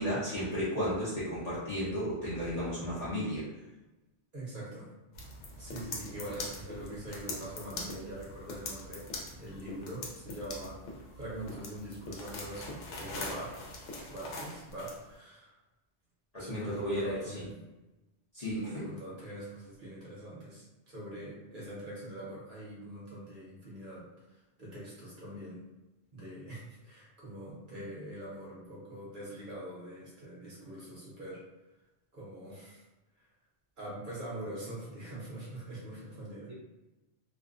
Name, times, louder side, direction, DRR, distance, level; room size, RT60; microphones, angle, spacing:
voice 1, 0.0-3.5 16.3-17.2 18.3-18.9, equal, 45° left, -10 dB, 0.6 m, -33 dB
voice 2, 4.3-4.9 5.6-15.5 16.4-17.5 18.5-25.7 26.1-31.4 32.1-32.8 33.8-36.5, right 1 dB, 50° right, -7 dB, 0.8 m, -43 dB
sound 1, 5.1-15.0, left 2 dB, 80° left, 0.9 m, -43 dB
2.4 x 2.1 x 2.4 m, 1.0 s
omnidirectional pair, 1.2 m